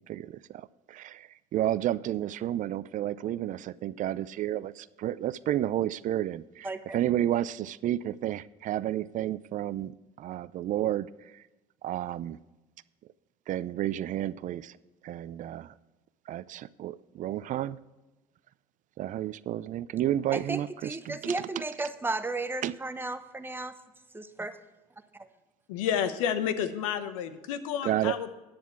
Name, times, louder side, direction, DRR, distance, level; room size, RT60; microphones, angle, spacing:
voice 1, 0.0-9.9 10.2-11.4 11.8-12.4 13.5-14.7 15.0-15.7 16.3-17.8 19.0-21.5 22.6-22.8 27.8-28.2, right 12 dB, 50° right, 18 dB, 0.4 m, -31 dB
voice 2, 6.6-7.0 20.3-23.8 24.1-24.6 25.1-25.3, right 2 dB, 15° right, 11 dB, 0.9 m, -34 dB
voice 3, 25.7-28.3, left 8 dB, 85° left, 12 dB, 0.9 m, -30 dB
10.5 x 9.3 x 4.6 m, 1.1 s
supercardioid pair, 75°, 17 cm